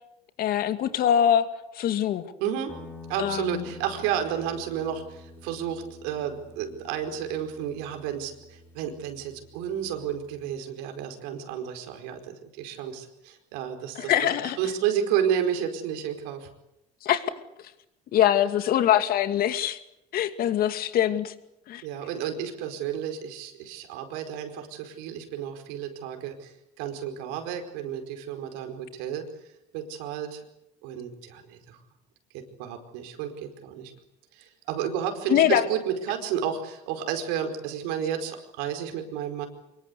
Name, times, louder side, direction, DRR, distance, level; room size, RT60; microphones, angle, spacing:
voice 1, 0.4-1.5 1.7-2.2 3.2-3.7 14.0-14.6 17.0-17.3 18.1-19.8 20.1-21.3 21.7-21.8 35.3-35.7, left 10 dB, 60° left, 10 dB, 2.5 m, -23 dB
voice 2, 2.4-2.7 3.1-14.1 14.4-16.5 21.8-29.3 29.7-30.4 30.8-31.8 32.3-33.9 34.3-39.5, right 9 dB, 85° right, 6 dB, 4.9 m, -31 dB
Guitar, 2.7-10.5, left 3 dB, 15° left, 7.3 m, -48 dB
25.0 x 22.5 x 8.4 m, 0.85 s
supercardioid pair, 100°, 17 cm